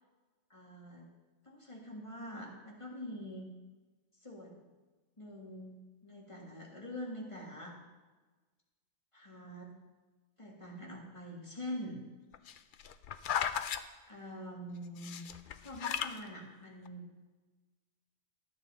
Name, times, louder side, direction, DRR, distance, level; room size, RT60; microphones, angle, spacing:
voice 1, 0.5-1.1 1.4-3.5 4.2-4.7 5.2-7.8 9.1-9.7 10.4-12.0 14.1-15.2 15.6-17.1, equal, 25° left, -2 dB, 1.6 m, -45 dB
sound 1, 12.3-13.8 15.0-16.2 16.9-17.0, left 8 dB, 60° left, 0.5 m, -35 dB
12.5 x 8.7 x 4.1 m, 1.3 s
omnidirectional pair, 1.3 m